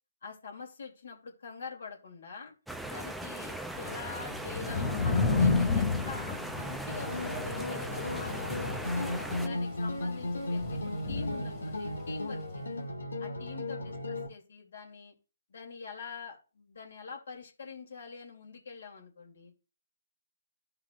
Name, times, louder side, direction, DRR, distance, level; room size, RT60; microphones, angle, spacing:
voice 1, 0.2-2.5 2.8-8.9 9.4-10.8 11.1-12.8 13.2-15.1 15.5-19.5, left 5 dB, 65° left, 0 dB, 2.6 m, -45 dB
sound 1, 2.7-9.5, right 1 dB, ahead, 0.4 m, -39 dB
Thunder / Rain, 3.8-12.1, left 4 dB, 20° left, 2.0 m, -32 dB
sound 2, 6.9-14.3, left 1 dB, 90° left, 1.4 m, -35 dB
13.5 x 4.8 x 2.4 m, 0.34 s
hypercardioid pair, 145°, 0 cm